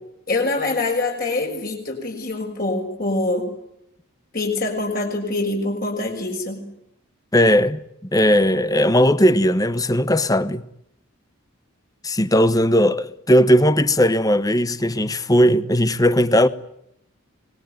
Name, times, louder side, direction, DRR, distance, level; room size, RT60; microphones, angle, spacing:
voice 1, 0.3-3.5 4.3-6.6, left 2 dB, 40° left, 6.4 m, -24 dB
voice 2, 7.3-7.8 8.1-10.6 12.0-16.5, equal, 15° left, 1.0 m, -17 dB
25.5 x 21.0 x 9.1 m
head